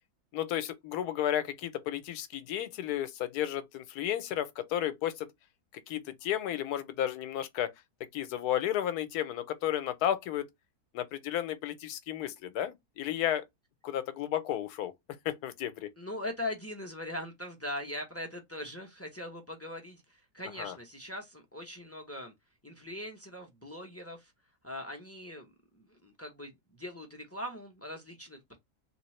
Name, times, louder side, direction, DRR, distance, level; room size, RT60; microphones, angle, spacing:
voice 1, 0.3-5.3 5.9-7.7 8.1-10.5 10.9-13.4 13.8-14.9 15.2-15.9 20.6-20.7, left 11 dB, 85° left, 1.2 m, -33 dB
voice 2, 16.0-22.3 22.6-24.3 24.6-28.6, left 1 dB, 15° left, 0.5 m, -41 dB
3.5 x 2.8 x 3.1 m
omnidirectional pair, 1.6 m